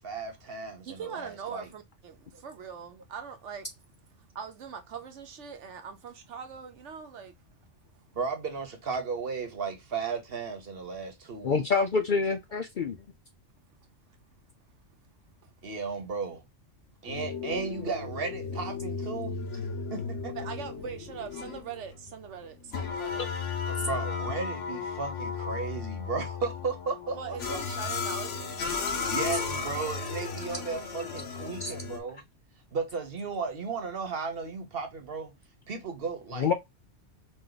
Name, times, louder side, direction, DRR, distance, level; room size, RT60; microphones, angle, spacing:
voice 1, 0.0-1.7 2.3-2.4 8.1-11.6 15.6-16.4 17.0-19.4 19.9-20.4 23.7-27.6 29.1-32.2 32.7-35.3 35.7-36.5, right 5 dB, 50° right, 1.2 m, -35 dB
voice 2, 0.8-3.7 4.2-7.3 15.4-15.5 20.3-23.3 27.1-29.9, right 7 dB, 70° right, 1.1 m, -42 dB
voice 3, 11.4-13.0 31.6-31.7 36.4-36.5, left 5 dB, 55° left, 0.6 m, -26 dB
sound 1, 17.1-32.0, left 5 dB, 75° left, 1.2 m, -35 dB
5.0 x 2.5 x 3.9 m
omnidirectional pair, 1.3 m